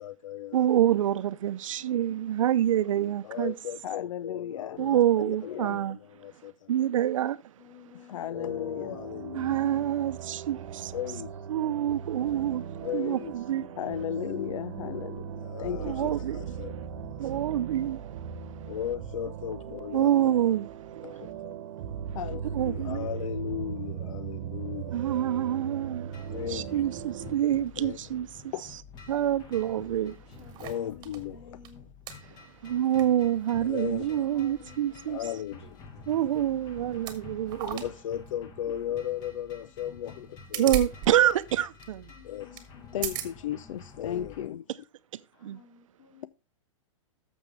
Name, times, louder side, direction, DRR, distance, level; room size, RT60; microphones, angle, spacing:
voice 1, 0.0-0.7 1.9-2.1 3.2-6.7 7.9-9.6 10.9-11.3 12.8-13.3 13.8-16.7 18.7-20.1 21.0-21.6 22.1-25.0 26.3-26.8 27.8-28.0 28.5-28.7 30.6-31.6 33.6-34.1 35.1-36.0 37.7-40.6 42.2-42.7 42.9-44.7, left 10 dB, 75° left, 0.5 m, -36 dB
voice 2, 0.5-3.5 4.8-6.0 6.7-7.4 9.3-10.9 11.5-12.7 12.9-13.7 15.8-16.4 17.2-18.0 19.9-20.7 22.5-23.1 24.9-26.2 26.5-28.5 29.1-30.2 32.2-32.3 32.6-35.2 36.1-37.8 40.6-42.1 45.1-45.6, right 11 dB, 75° right, 0.7 m, -27 dB
voice 3, 1.8-2.6 4.5-5.5 7.6-8.4 12.3-13.7 15.7-17.1 19.7-20.1 22.3-22.5 22.9-23.1 25.6-25.7 27.0-28.0 30.4-31.8 34.1-35.4 40.1-40.2 42.1-43.0 45.3-46.3, left 5 dB, 55° left, 3.1 m, -53 dB
sound 1, 8.3-27.4, right 8 dB, 55° right, 1.1 m, -38 dB
sound 2, 26.1-44.5, left 4 dB, 25° left, 1.6 m, -49 dB
sound 3, 29.9-31.2 31.6-31.7 32.1-32.2 32.8-33.1 33.4-33.5 36.2-36.4 36.9-37.2 37.5-37.9 38.3-38.4 40.2-41.1 41.4-41.5 41.8-41.9 42.6-42.7 43.0-43.3 44.0-44.1, right 8 dB, 25° right, 1.5 m, -36 dB
12.0 x 7.1 x 3.4 m
hypercardioid pair, 155°, 17 cm